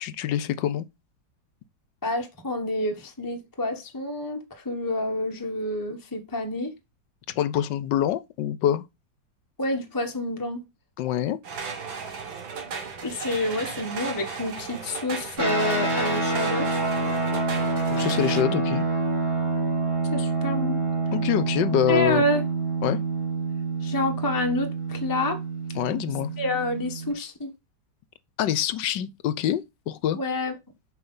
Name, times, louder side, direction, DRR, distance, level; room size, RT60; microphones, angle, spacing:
voice 1, 0.0-0.9 7.4-8.8 11.0-11.4 17.9-18.8 21.1-22.2 22.8-23.0 25.8-26.3 28.4-30.2, left 11 dB, 75° left, 1.3 m, -25 dB
voice 2, 2.0-6.7 9.6-10.6 13.0-16.9 20.1-20.8 21.9-22.4 23.8-25.4 26.4-27.5 30.1-30.5, left 1 dB, 15° left, 1.0 m, -28 dB
sound 1, 11.4-18.4, right 5 dB, 90° right, 2.4 m, -35 dB
sound 2, 15.4-27.1, right 3 dB, 40° right, 3.9 m, -27 dB
7.8 x 5.4 x 5.5 m
omnidirectional pair, 2.1 m